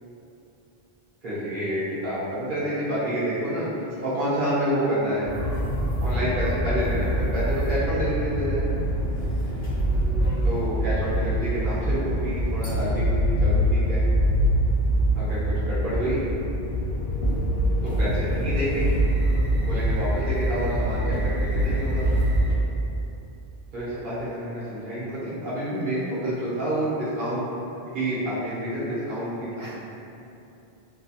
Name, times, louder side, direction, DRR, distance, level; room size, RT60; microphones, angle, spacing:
voice 1, 1.2-5.3 6.0-8.6 10.4-14.0 15.1-16.3 17.8-18.9 19.5-22.0 23.7-27.5 27.9-29.6, equal, 55° right, -10 dB, 0.9 m, -28 dB
sound 1, 5.2-22.5, equal, 80° left, 0.9 m, -24 dB
voice 2, 9.9-10.4 29.6-29.8, right 1 dB, 35° right, -9 dB, 0.5 m, -47 dB
2.7 x 2.7 x 2.4 m, 2.8 s
omnidirectional pair, 1.0 m